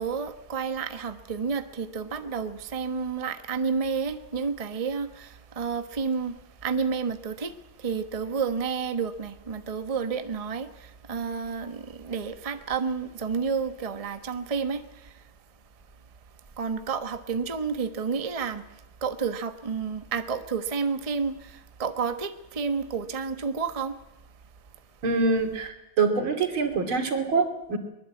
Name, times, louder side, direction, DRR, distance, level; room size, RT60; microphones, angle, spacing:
voice 1, 0.0-15.2 16.6-24.0, right 5 dB, 20° right, 1.0 m, -30 dB
voice 2, 25.0-27.8, right 4 dB, 85° right, 3.4 m, -25 dB
22.5 x 21.0 x 8.5 m
omnidirectional pair, 2.2 m